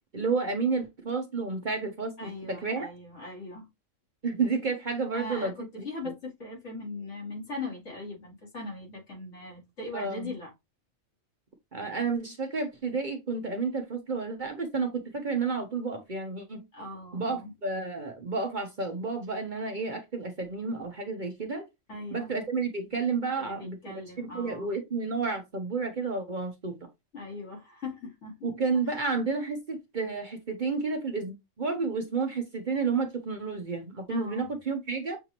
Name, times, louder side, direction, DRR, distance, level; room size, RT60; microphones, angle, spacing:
voice 1, 0.1-2.9 4.2-5.8 9.9-10.3 11.7-16.6 17.1-21.7 22.1-26.7 28.4-35.2, right 4 dB, 40° right, 0.9 m, -31 dB
voice 2, 2.2-3.7 5.1-10.5 16.7-17.5 21.9-22.3 23.3-24.7 27.1-28.5 34.1-34.5, left 2 dB, 65° left, 2.4 m, -40 dB
6.7 x 2.7 x 2.9 m
omnidirectional pair, 1.3 m